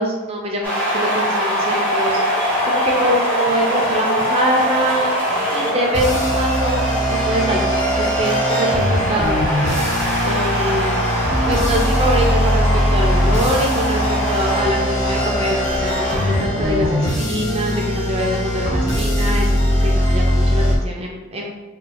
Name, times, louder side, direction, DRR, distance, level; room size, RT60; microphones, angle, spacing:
voice 1, 0.0-5.2 5.5-9.6 10.2-11.1 11.5-21.5, equal, 30° right, -1 dB, 0.5 m, -24 dB
sound 1, 0.6-16.4, equal, 10° left, 1.0 m, -23 dB
sound 2, 5.9-20.8, equal, 35° left, 1.1 m, -20 dB
4.4 x 3.1 x 2.3 m, 1.1 s
head